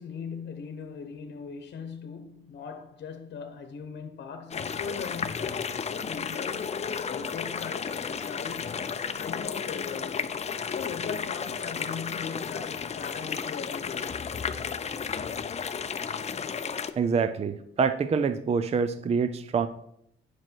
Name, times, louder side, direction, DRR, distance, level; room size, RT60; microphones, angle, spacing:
voice 1, 0.0-10.4 10.7-14.4, left 6 dB, 55° left, 1.0 m, -40 dB
sound 1, 4.5-16.9, left 6 dB, 30° left, 0.6 m, -33 dB
voice 2, 17.0-19.7, right 5 dB, 30° right, 0.5 m, -26 dB
10.0 x 6.3 x 4.6 m
cardioid pair, 120°, 21 cm